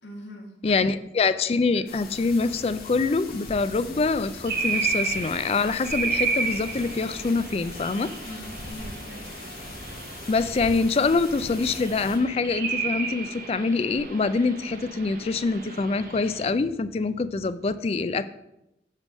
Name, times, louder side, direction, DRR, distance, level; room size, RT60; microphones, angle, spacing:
voice 1, 0.0-0.8 1.1-1.3 1.7-1.9 8.2-9.3, left 1 dB, 85° left, 0 dB, 1.7 m, -42 dB
voice 2, 0.6-8.1 10.3-18.2, left 4 dB, 35° left, 13 dB, 0.3 m, -25 dB
sound 1, 1.9-12.2, left 2 dB, 55° left, 1.5 m, -41 dB
sound 2, 4.5-16.5, right 4 dB, 50° right, 0.8 m, -32 dB
8.3 x 3.5 x 6.3 m, 0.87 s
head